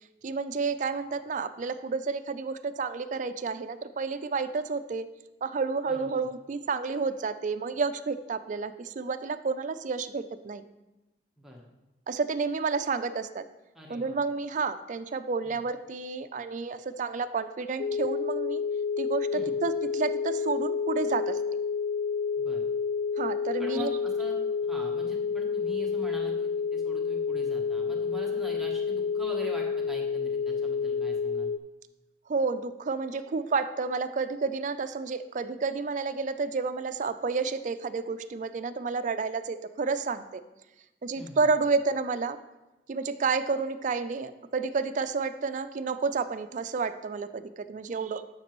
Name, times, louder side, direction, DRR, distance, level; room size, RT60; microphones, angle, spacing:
voice 1, 0.2-5.1 5.4-10.6 12.1-13.4 13.9-18.6 19.0-21.4 23.2-23.9 32.3-40.4 41.0-42.4 42.9-48.2, right 4 dB, 45° right, 11 dB, 0.4 m, -30 dB
voice 2, 5.9-6.3 11.4-11.7 13.7-14.2 15.4-15.6 19.3-19.5 22.4-22.7 23.6-31.5 41.1-41.5, equal, ahead, -2 dB, 1.0 m, -43 dB
sound 1, 17.8-31.6, left 5 dB, 75° left, 0.3 m, -29 dB
12.5 x 5.9 x 3.0 m, 1.0 s
head